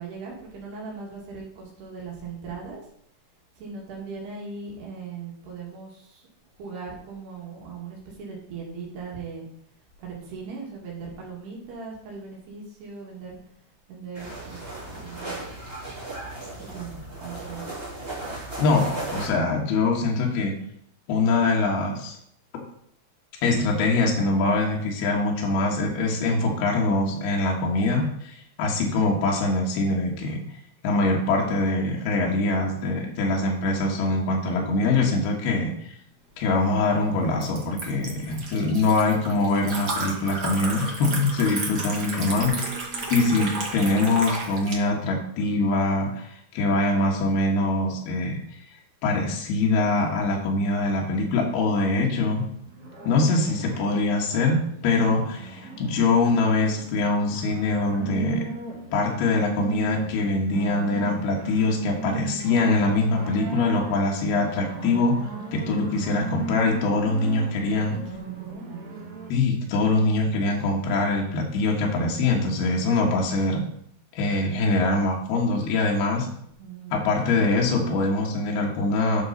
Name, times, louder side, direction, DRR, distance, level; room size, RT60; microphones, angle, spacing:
voice 1, 0.0-2.8 3.6-6.3 6.6-9.5 10.0-15.6 16.6-17.7 42.4-43.0 67.7-68.9 76.6-77.1, right 5 dB, 80° right, -2 dB, 4.1 m, -39 dB
sound 1, 14.1-19.3, right 2 dB, 15° right, 2.7 m, -36 dB
voice 2, 18.6-20.6 21.1-22.2 22.5-22.6 23.4-30.4 30.8-36.0 36.4-42.5 43.1-48.6 49.0-52.4 53.0-58.5 58.9-67.9 69.3-73.6 74.1-76.3 76.9-79.2, left 2 dB, 75° left, -1 dB, 3.3 m, -23 dB
Liquid, 36.4-44.7, right 3 dB, 65° right, 1.0 m, -33 dB
sound 2, 52.4-69.3, right 5 dB, 45° right, 1.3 m, -37 dB
11.0 x 6.1 x 4.0 m, 0.70 s
omnidirectional pair, 4.6 m